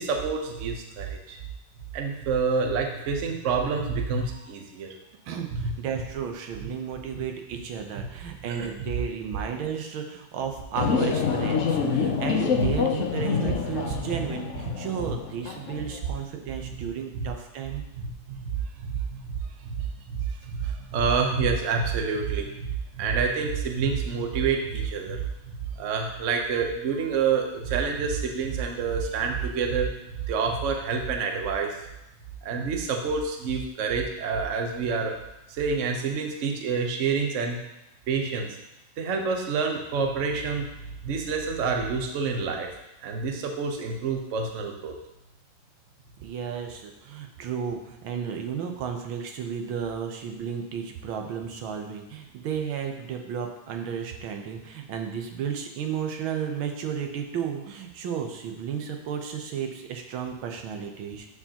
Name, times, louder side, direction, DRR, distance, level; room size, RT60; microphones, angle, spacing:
voice 1, 0.0-1.4 1.9-4.9 5.6-5.7 6.6-6.7 8.5-8.7 12.6-12.7 14.1-14.2 15.0-15.1 16.6-16.7 17.9-22.7 22.9-30.0 30.3-31.8 32.4-35.2 35.5-37.6 38.1-38.6 39.0-40.7 41.0-42.7 43.0-44.9, right 5 dB, 50° right, 3 dB, 1.0 m, -28 dB
voice 2, 5.3-17.8 46.2-61.3, right 7 dB, 90° right, 4 dB, 1.7 m, -33 dB
sound 1, 10.8-16.1, left 6 dB, 75° left, 0.6 m, -27 dB
12.5 x 4.8 x 2.9 m, 0.90 s
omnidirectional pair, 2.2 m